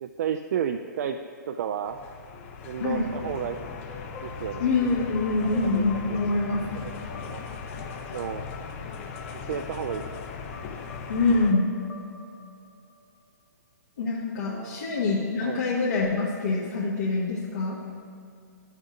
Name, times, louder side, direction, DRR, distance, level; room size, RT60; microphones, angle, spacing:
voice 1, 0.0-1.2 1.5-2.0 2.6-3.6 4.2-4.7 5.4-6.2 6.8-7.0 7.3-7.4 8.1-8.5 9.3-10.0 14.4-14.9 15.4-15.6, right 8 dB, 55° right, 6 dB, 0.4 m, -32 dB
sound 1, 1.9-11.5, left 5 dB, 40° left, 0.7 m, -38 dB
sound 2, 2.8-13.4, left 4 dB, 25° left, 1.1 m, -47 dB
voice 2, 4.6-6.9 11.1-11.7 14.0-17.8, left 3 dB, 65° left, -8 dB, 1.4 m, -25 dB
11.5 x 6.5 x 2.5 m, 2.4 s
hypercardioid pair, 130°, 10 cm